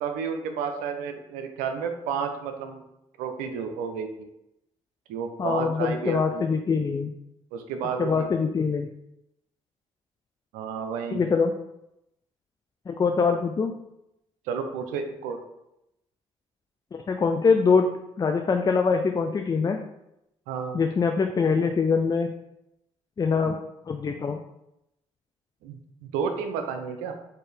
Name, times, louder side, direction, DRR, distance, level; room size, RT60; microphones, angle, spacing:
voice 1, 0.0-2.8 3.2-4.3 5.1-6.4 7.5-8.3 10.5-11.2 14.5-15.4 20.5-20.8 25.6-27.1, right 6 dB, 85° right, 6 dB, 0.5 m, -31 dB
voice 2, 5.4-7.1 8.0-8.9 11.1-11.6 12.9-13.8 16.9-19.8 20.7-22.3 23.2-23.6 23.9-24.4, left 5 dB, 30° left, 5 dB, 0.4 m, -24 dB
4.4 x 2.6 x 3.3 m, 0.84 s
supercardioid pair, 55°, 14 cm